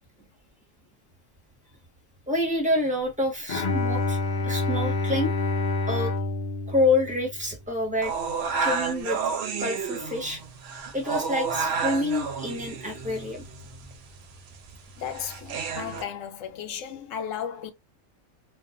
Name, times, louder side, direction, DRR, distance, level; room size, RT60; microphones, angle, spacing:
voice 1, 2.3-4.2 4.4-5.3 5.9-6.1 6.7-8.1 8.6-9.2 9.6-10.4 10.9-13.4, left 2 dB, 5° right, 0.7 m, -27 dB
Bowed string instrument, 3.5-7.6, left 2 dB, 55° left, 0.5 m, -27 dB
sound 1, 8.0-16.0, right 5 dB, 60° right, 0.7 m, -31 dB
voice 2, 15.0-17.7, left 8 dB, 70° left, 0.9 m, -35 dB
2.5 x 2.2 x 2.3 m
omnidirectional pair, 1.4 m